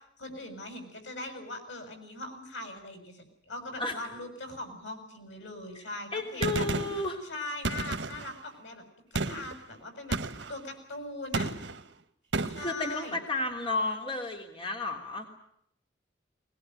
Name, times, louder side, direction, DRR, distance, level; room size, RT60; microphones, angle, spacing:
voice 1, 0.2-6.7 7.2-8.8 9.3-10.2 10.5-11.5 12.4-13.2, left 2 dB, 85° left, 6 dB, 6.9 m, -40 dB
voice 2, 6.1-7.2 12.6-15.3, left 2 dB, 30° left, 2 dB, 3.2 m, -32 dB
Gunshot gunfire, 6.4-7.1 7.6-8.4 9.1-9.6 10.1-10.6 11.3-11.8 12.3-12.7, right 3 dB, 80° right, 1.5 m, -32 dB
21.5 x 21.0 x 9.2 m, 0.70 s
head